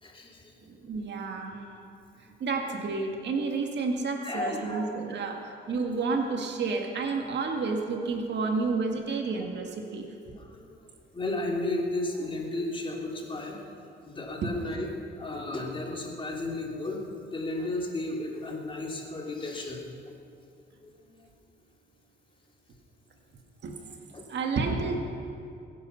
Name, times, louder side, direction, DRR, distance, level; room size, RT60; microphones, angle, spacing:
voice 1, 0.0-0.5 4.2-5.1 10.4-10.7 11.1-13.6 14.0-14.9 15.2-17.0 17.3-19.8 20.8-21.3 24.1-24.2, left 2 dB, 25° left, -1 dB, 3.1 m, -34 dB
voice 2, 0.7-1.6 2.4-10.1 14.4-14.5 23.6-23.7 24.3-24.9, right 4 dB, 60° right, 2 dB, 2.0 m, -30 dB
21.5 x 10.5 x 5.8 m, 2.6 s
cardioid pair, 90°, 20 cm